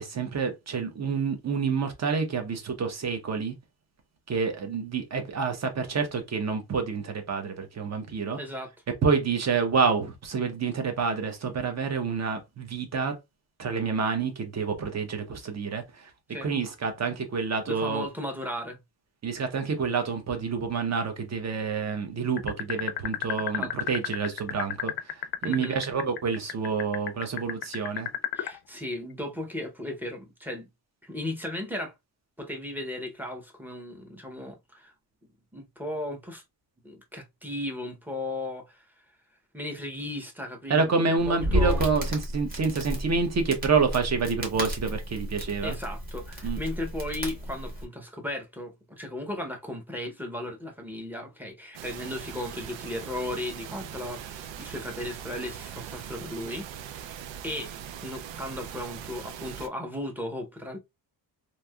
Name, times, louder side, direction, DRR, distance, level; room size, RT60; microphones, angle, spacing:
voice 1, 0.0-3.5 4.3-8.4 9.0-13.2 13.6-16.1 16.4-18.0 19.2-28.1 40.7-45.7 46.4-46.6, right 5 dB, 40° right, 0.8 m, -28 dB
voice 2, 8.4-8.7 16.3-16.5 17.7-18.8 23.6-23.7 25.4-25.8 28.3-30.7 31.0-31.9 32.4-34.9 35.5-36.4 36.8-38.8 39.5-41.8 45.6-57.2 57.4-57.7 58.0-60.8, left 1 dB, 5° right, 0.7 m, -36 dB
sound 1, 22.4-28.6, left 12 dB, 65° left, 0.5 m, -30 dB
Crackle, 41.2-47.8, equal, 20° right, 1.2 m, -32 dB
sound 2, 51.7-59.7, right 9 dB, 85° right, 0.5 m, -41 dB
3.1 x 2.7 x 2.2 m
wide cardioid pair, 140°, 43 cm